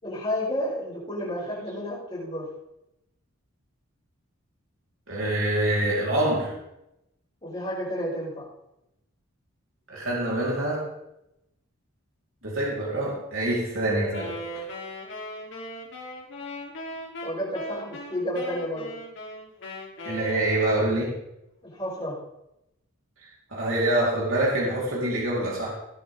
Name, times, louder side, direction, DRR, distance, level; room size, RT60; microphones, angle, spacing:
voice 1, 0.0-2.4 7.4-8.4 17.2-18.9 21.6-22.2, equal, 25° left, -10 dB, 5.9 m, -31 dB
voice 2, 5.1-6.5 9.9-10.9 12.4-14.6 20.0-21.1 23.2-25.7, right 1 dB, 70° right, -5 dB, 4.4 m, -26 dB
Wind instrument woodwind instrument, 14.1-21.1, equal, 55° left, 3.5 m, -38 dB
20.0 x 9.2 x 3.8 m, 0.85 s
head